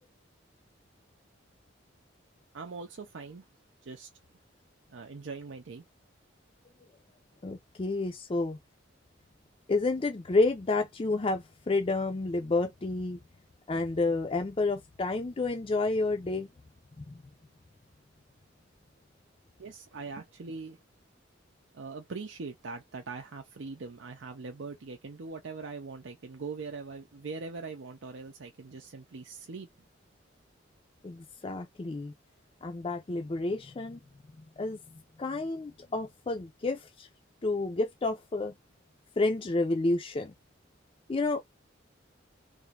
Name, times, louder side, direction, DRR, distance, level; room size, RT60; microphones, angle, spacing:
voice 1, 2.5-3.4 3.8-4.1 4.9-5.8 19.6-20.8 21.7-29.7, right 4 dB, 80° right, 0.6 m, -41 dB
voice 2, 7.4-8.6 9.7-13.2 13.7-16.5 17.0-17.2 31.0-32.1 32.6-34.0 34.6-34.8 35.2-37.1 37.4-38.5 39.2-40.3 41.1-41.4, left 3 dB, 30° left, 0.4 m, -30 dB
3.4 x 2.6 x 3.2 m
head